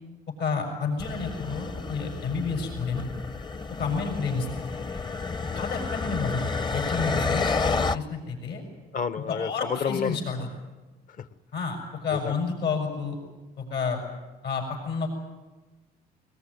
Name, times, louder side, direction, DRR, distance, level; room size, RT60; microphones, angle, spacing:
voice 1, 0.4-3.0 3.8-4.5 5.5-8.6 9.3-10.4 11.5-13.2 13.6-14.0 14.4-15.1, left 5 dB, 75° left, 2 dB, 6.5 m, -30 dB
sound 1, 1.0-8.0, left 4 dB, 25° left, 0.8 m, -30 dB
voice 2, 8.9-10.2 11.1-11.3 12.1-12.4, left 7 dB, 50° left, 14 dB, 1.1 m, -31 dB
22.0 x 21.5 x 9.6 m, 1.2 s
cardioid pair, 110°, 17 cm